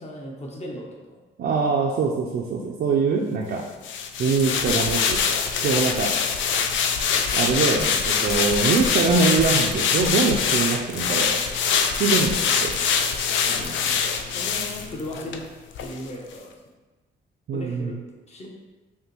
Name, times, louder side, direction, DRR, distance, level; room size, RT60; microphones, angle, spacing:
voice 1, 0.0-1.2 12.7-13.0 13.4-15.5 15.8-16.5 17.5-18.0 18.3-18.5, left 1 dB, 35° left, -1 dB, 0.9 m, -37 dB
voice 2, 1.4-3.7 4.2-5.2 5.6-6.1 7.3-11.4 12.0-12.7 17.5-17.9, right 4 dB, 55° right, 0 dB, 0.5 m, -23 dB
sound 1, 3.8-15.4 15.8-15.9, left 6 dB, 70° left, 0.4 m, -23 dB
5.3 x 2.2 x 3.1 m, 1.2 s
cardioid pair, 90°, 20 cm